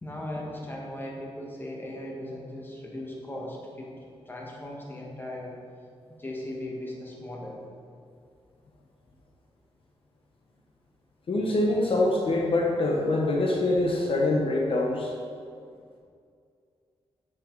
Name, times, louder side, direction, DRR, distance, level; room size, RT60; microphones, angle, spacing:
voice 1, 0.0-3.9 4.2-5.5 6.2-7.6, left 1 dB, 20° left, -2 dB, 1.6 m, -38 dB
voice 2, 11.3-15.1, left 2 dB, 55° left, -1 dB, 1.1 m, -24 dB
9.8 x 6.1 x 4.7 m, 2.3 s
wide cardioid pair, 140°, 11 cm